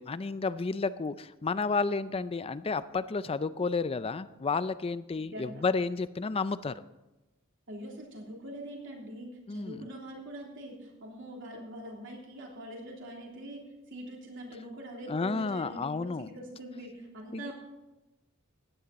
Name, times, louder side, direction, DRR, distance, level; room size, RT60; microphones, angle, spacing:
voice 1, 0.0-6.7 9.5-9.8 15.1-16.3 17.3-17.5, left 4 dB, 25° left, 15 dB, 0.4 m, -31 dB
voice 2, 5.2-5.6 7.7-17.6, right 1 dB, 60° right, -1 dB, 3.3 m, -43 dB
15.5 x 10.5 x 4.2 m, 1.0 s
head